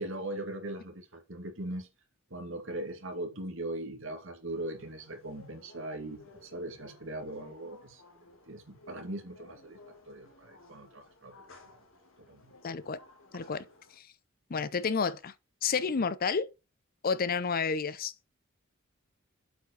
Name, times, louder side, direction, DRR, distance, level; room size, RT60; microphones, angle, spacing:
voice 1, 0.0-1.9 2.3-8.0 8.5-9.8 10.1-11.6 12.2-12.5, right 1 dB, 65° right, 2.3 m, -40 dB
sound 1, 4.5-14.0, left 2 dB, 70° left, 3.0 m, -57 dB
voice 2, 12.6-13.0 13.3-13.7 14.0-14.1 14.5-15.3 15.6-16.5 17.0-18.1, left 5 dB, 45° left, 0.6 m, -30 dB
7.9 x 5.1 x 6.7 m
head